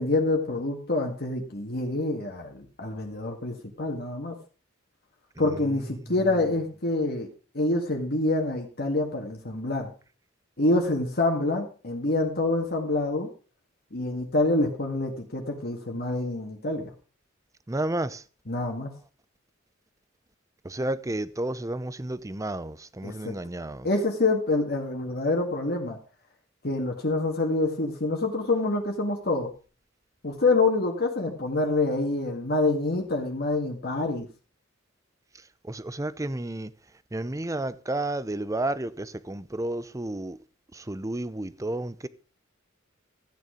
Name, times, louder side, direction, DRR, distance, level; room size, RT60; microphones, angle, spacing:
voice 1, 0.0-4.4 5.4-7.3 7.5-9.9 10.6-13.3 13.9-16.9 18.5-18.9 23.0-23.4 23.8-26.0 26.6-29.5 30.2-34.3, left 2 dB, 50° left, 2.0 m, -26 dB
voice 2, 5.4-5.8 17.7-18.2 20.6-23.9 35.6-36.7 37.1-40.4 40.7-42.1, right 1 dB, 15° right, 0.6 m, -31 dB
14.0 x 9.3 x 5.1 m
head